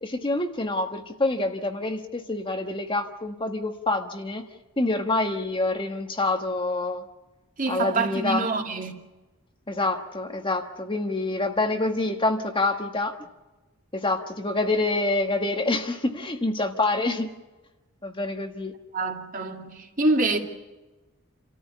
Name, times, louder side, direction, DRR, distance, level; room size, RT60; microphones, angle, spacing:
voice 1, 0.0-4.5 4.8-7.0 7.7-8.4 9.7-13.1 13.9-17.3 18.0-18.7, left 2 dB, 20° left, 1.3 m, -26 dB
voice 2, 7.6-8.9 18.9-20.4, right 2 dB, 35° right, 2.3 m, -26 dB
28.5 x 14.0 x 8.3 m
head